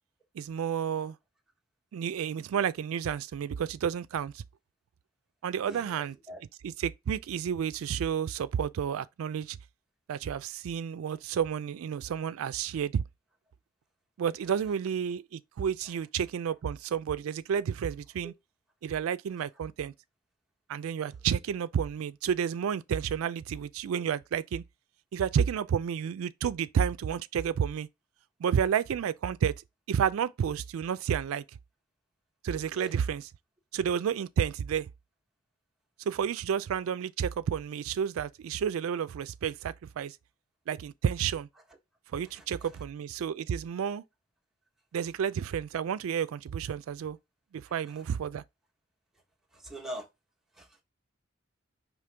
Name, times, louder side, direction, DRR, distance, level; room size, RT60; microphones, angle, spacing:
voice 1, 0.3-1.2 1.9-4.4 5.4-6.2 6.6-9.6 10.1-13.0 14.2-18.3 18.8-19.9 20.7-24.6 25.1-27.9 28.4-29.5 29.9-31.4 32.4-33.2 33.7-34.9 36.0-40.2 40.7-41.5 42.1-44.0 44.9-47.2 47.5-48.4, right 8 dB, 85° right, 0.3 m, -31 dB
voice 2, 5.6-6.4 15.9-16.0 18.2-18.3 32.7-33.0 42.2-42.8 47.7-48.1 49.5-50.1 50.5-50.8, right 1 dB, ahead, 1.1 m, -45 dB
5.1 x 3.1 x 3.3 m
head